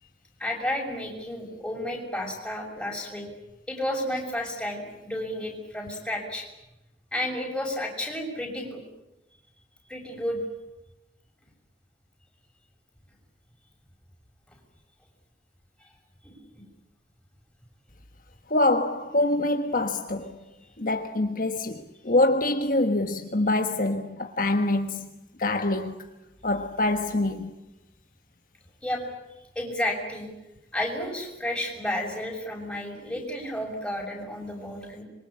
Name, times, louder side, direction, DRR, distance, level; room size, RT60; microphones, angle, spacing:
voice 1, 0.4-3.2 3.7-6.5 7.1-8.8 9.9-10.4 16.2-16.6 28.8-29.0 29.5-30.3 30.7-35.0, left 1 dB, 5° left, 6.5 m, -32 dB
voice 2, 18.5-20.4 20.8-25.1 25.4-26.1 26.4-27.5, left 2 dB, 50° left, 1.4 m, -25 dB
26.5 x 23.0 x 8.6 m
head